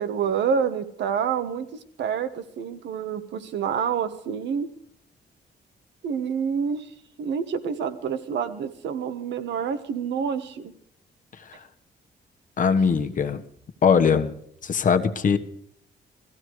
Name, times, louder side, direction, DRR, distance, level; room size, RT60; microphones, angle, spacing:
voice 1, 0.0-1.7 2.0-4.7 6.0-6.9 7.2-10.7, right 7 dB, 85° right, 10 dB, 1.5 m, -27 dB
voice 2, 12.6-13.4 13.8-14.3 14.6-15.4, left 6 dB, 50° left, 7 dB, 1.3 m, -20 dB
17.5 x 14.5 x 4.8 m, 0.71 s
cardioid pair, 125°, 18 cm